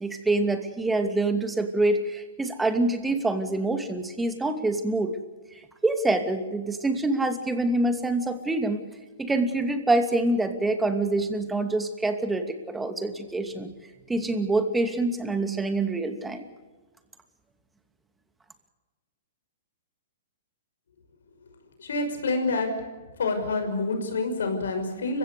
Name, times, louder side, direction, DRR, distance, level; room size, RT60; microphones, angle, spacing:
voice 1, 0.0-5.1 5.5-8.8 9.2-13.7 14.1-16.4, right 2 dB, 10° right, 7 dB, 2.6 m, -26 dB
voice 2, 21.8-22.7 23.2-25.2, left 3 dB, 75° left, 5 dB, 5.8 m, -27 dB
29.5 x 16.5 x 6.8 m, 1.3 s
hypercardioid pair, 115°, 0 cm